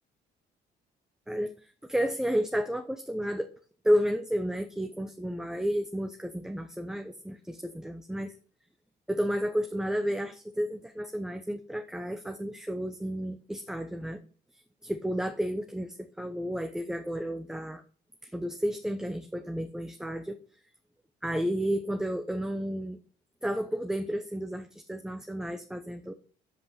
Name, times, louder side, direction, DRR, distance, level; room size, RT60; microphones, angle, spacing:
voice 1, 1.3-3.5 3.8-8.3 9.1-14.2 14.8-17.8 18.2-20.4 21.2-23.0 23.4-26.1, equal, 5° right, 6 dB, 0.8 m, -31 dB
8.0 x 5.3 x 6.9 m, 0.41 s
cardioid pair, 110°, 17 cm